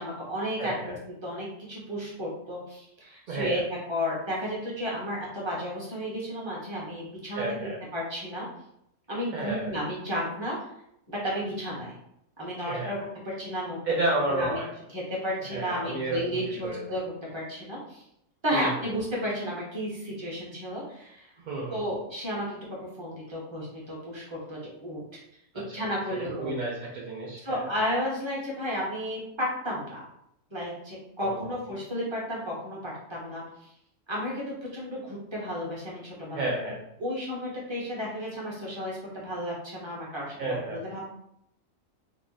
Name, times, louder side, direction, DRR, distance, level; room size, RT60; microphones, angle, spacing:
voice 1, 0.0-3.6 3.9-7.4 7.9-8.5 9.1-10.6 11.1-11.9 12.4-13.0 13.2-13.8 14.3-14.6 14.9-17.0 17.3-18.0 18.4-21.3 21.7-25.0 25.7-26.5 27.4-30.0 30.5-33.4 34.1-36.5 37.0-41.0, equal, 20° right, -4 dB, 1.0 m, -33 dB
voice 2, 0.6-1.0 3.3-3.6 7.3-7.8 9.3-9.7 12.7-13.0 13.9-14.7 15.5-16.8 18.5-18.7 21.5-21.8 25.5-25.6 26.4-27.6 31.2-31.5 36.3-36.8 40.4-40.8, right 2 dB, 65° right, -3 dB, 0.4 m, -31 dB
2.9 x 2.3 x 3.9 m, 0.76 s
omnidirectional pair, 1.4 m